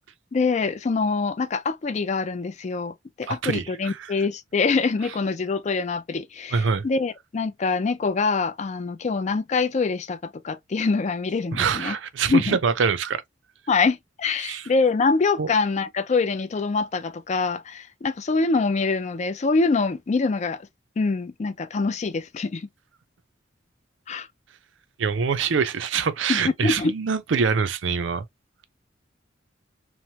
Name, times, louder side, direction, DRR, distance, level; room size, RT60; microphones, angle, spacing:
voice 1, 0.3-10.2 10.4-12.0 12.3-12.6 13.7-20.6 21.0-22.7 24.1-24.3 26.3-26.9, left 4 dB, 40° left, 0.4 m, -24 dB
voice 2, 3.3-4.1 6.5-6.9 11.5-13.2 14.4-14.7 15.4-15.5 25.0-28.2, right 5 dB, 75° right, 0.5 m, -24 dB
3.0 x 2.1 x 2.8 m
head